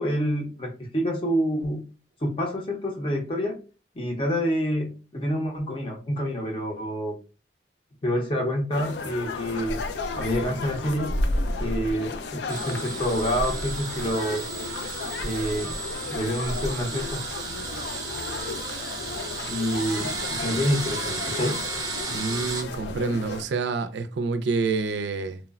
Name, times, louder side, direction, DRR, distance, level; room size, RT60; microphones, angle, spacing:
voice 1, 0.0-1.8 2.2-3.6 4.0-7.1 8.0-9.8 10.2-11.1 11.6-14.5 15.2-15.8 16.1-17.2 19.5-21.6, equal, 30° left, 0.6 m, -27 dB
sound 1, 8.7-23.4, left 2 dB, 70° left, 0.3 m, -33 dB
sound 2, 12.5-22.6, right 3 dB, 20° right, 0.5 m, -34 dB
voice 2, 22.1-25.4, right 4 dB, 80° right, 0.4 m, -27 dB
3.0 x 2.1 x 2.2 m
head